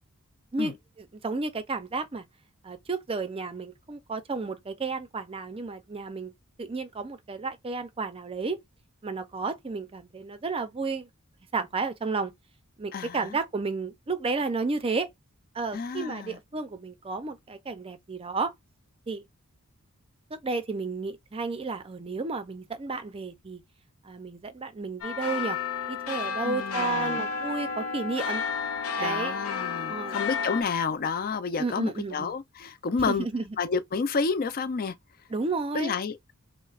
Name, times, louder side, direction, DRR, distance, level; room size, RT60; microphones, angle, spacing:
voice 1, 0.5-2.2 2.6-6.3 6.6-8.6 9.0-11.1 11.5-12.3 12.8-15.1 15.5-18.5 19.1-19.3 20.3-23.6 24.0-25.6 25.9-28.4 28.9-29.4 29.9-30.2 31.6-32.3 33.1-33.5 35.3-36.0, right 4 dB, 25° right, 0.4 m, -32 dB
voice 2, 12.9-13.4 15.7-16.4 26.4-27.3 29.0-33.3 33.6-34.9 35.7-36.3, left 5 dB, 40° left, 0.4 m, -30 dB
sound 1, 25.0-30.6, left 5 dB, 80° left, 0.8 m, -31 dB
5.5 x 2.0 x 2.4 m
head